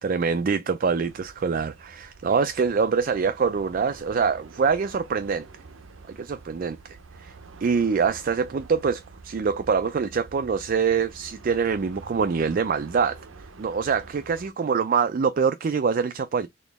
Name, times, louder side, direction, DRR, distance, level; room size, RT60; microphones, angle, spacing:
voice 1, 0.0-5.5 6.1-7.3 7.6-13.2 13.6-16.5, right 5 dB, 45° right, 0.4 m, -25 dB
sound 1, 0.9-14.5, right 3 dB, 80° right, 0.7 m, -47 dB
4.1 x 2.9 x 3.4 m
head